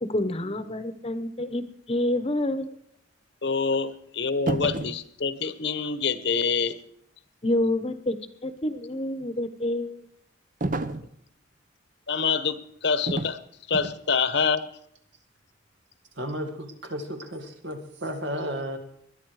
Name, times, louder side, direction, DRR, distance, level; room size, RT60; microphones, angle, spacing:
voice 1, 0.0-1.6 1.9-2.7 7.4-8.2 8.4-10.0, left 1 dB, 30° left, 11 dB, 1.0 m, -27 dB
voice 2, 3.4-6.8 12.1-13.4 13.7-14.7, left 5 dB, 60° left, 13 dB, 1.0 m, -26 dB
sound 1, 4.5-5.0 10.6-11.1 13.1-13.4 13.7-14.0, right 2 dB, 40° right, 0.7 m, -29 dB
voice 3, 16.2-18.8, equal, 70° right, 5 dB, 2.3 m, -33 dB
21.0 x 11.5 x 4.9 m, 0.69 s
head